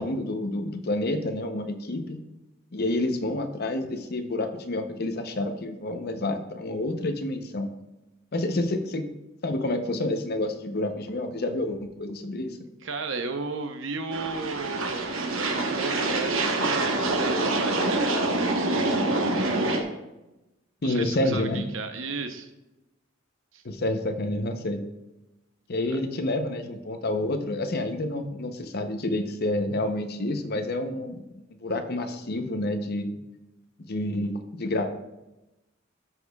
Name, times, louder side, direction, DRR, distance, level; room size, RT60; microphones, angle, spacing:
voice 1, 0.0-2.2 2.7-7.7 8.3-9.1 9.4-12.6 20.8-21.6 23.6-24.8 25.7-33.2 33.9-34.9, left 1 dB, 55° left, 7 dB, 0.8 m, -29 dB
voice 2, 12.8-19.3 20.8-22.5 23.5-23.6 25.9-26.0, right 4 dB, 70° right, 7 dB, 0.8 m, -35 dB
sound 1, 14.1-19.8, right 2 dB, 85° right, 1.1 m, -26 dB
13.0 x 6.2 x 2.4 m, 0.98 s
head